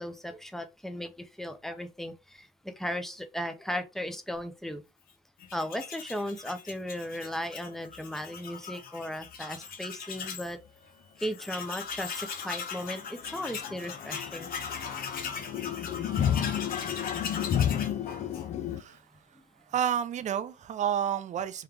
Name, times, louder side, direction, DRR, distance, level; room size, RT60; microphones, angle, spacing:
voice 1, 0.0-4.8 5.5-10.6 11.2-14.5 19.3-19.4, equal, ahead, 0.7 m, -36 dB
Tools, 5.4-10.5 10.9-11.0 11.2-18.8, left 6 dB, 60° left, 1.0 m, -39 dB
sound 1, 11.9-12.0 12.4-12.5 12.8-18.8, left 9 dB, 45° left, 0.4 m, -32 dB
voice 2, 19.7-21.6, right 9 dB, 45° right, 0.5 m, -30 dB
3.7 x 3.2 x 3.4 m
cardioid pair, 110°, 17 cm